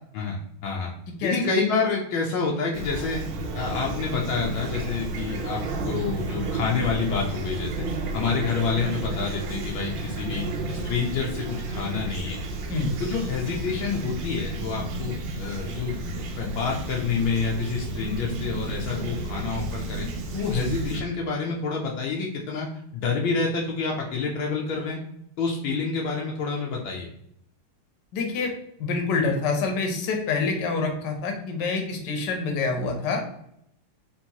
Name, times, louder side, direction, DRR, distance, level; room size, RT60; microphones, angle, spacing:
voice 1, 0.1-0.9 1.2-3.2 3.5-7.9 8.1-10.5 10.8-12.4 13.0-22.7 22.9-25.0 25.4-27.1, left 5 dB, 75° left, -1 dB, 1.4 m, -28 dB
Fowl / Chirp tweet, 2.7-21.0, right 2 dB, 80° right, 1.5 m, -32 dB
voice 2, 28.1-28.5 28.8-33.2, left 4 dB, 60° left, 3 dB, 1.4 m, -26 dB
4.5 x 3.5 x 2.9 m, 0.74 s
omnidirectional pair, 2.3 m